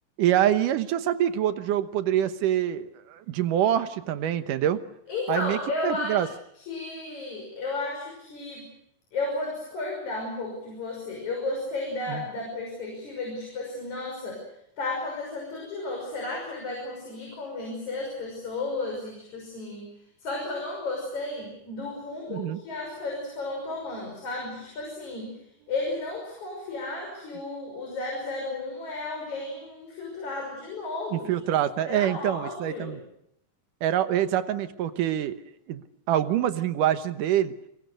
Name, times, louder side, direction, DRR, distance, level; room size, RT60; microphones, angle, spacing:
voice 1, 0.2-4.8 5.3-5.6 5.8-6.3 12.1-12.3 22.3-22.6 31.1-33.0 33.8-35.4 35.7-35.8 36.1-37.5, right 11 dB, 85° right, 10 dB, 2.7 m, -25 dB
voice 2, 5.1-6.2 6.7-8.7 9.1-14.4 14.8-19.9 20.2-25.4 25.7-31.3 31.9-33.0, left 2 dB, 60° left, 0 dB, 7.4 m, -33 dB
29.5 x 23.0 x 6.6 m, 0.76 s
omnidirectional pair, 3.7 m